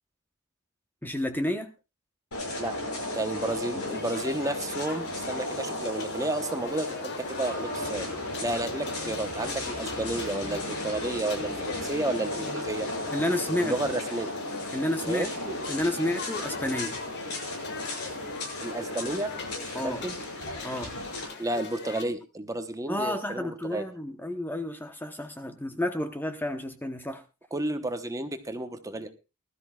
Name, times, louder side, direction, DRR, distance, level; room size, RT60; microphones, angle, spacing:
voice 1, 1.0-1.7 13.1-13.7 14.7-17.0 19.7-20.0 20.6-20.9 22.9-27.2, left 1 dB, 10° left, 6 dB, 1.0 m, -31 dB
sound 1, 2.3-21.2, left 1 dB, 80° left, 6.4 m, -35 dB
voice 2, 3.1-8.1 8.4-12.9 13.6-14.3 15.0-15.3 18.6-19.3 19.8-20.2 21.4-23.8 27.5-29.1, right 2 dB, 15° right, 7 dB, 1.0 m, -31 dB
sound 2, 3.9-22.0, left 4 dB, 50° left, 1.8 m, -42 dB
20.5 x 13.0 x 2.4 m, 0.27 s
head